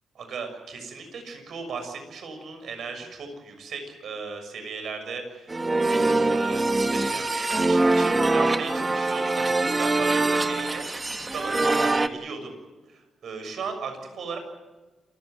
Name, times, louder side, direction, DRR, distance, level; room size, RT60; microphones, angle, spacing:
voice 1, 0.1-5.6 6.0-10.8 11.1-12.5 12.9-14.4, right 5 dB, 70° right, 6 dB, 6.7 m, -37 dB
sound 1, 5.5-12.1, right 2 dB, 25° right, 1.5 m, -23 dB
27.5 x 16.5 x 9.6 m, 1.2 s
cardioid pair, 110°, 0 cm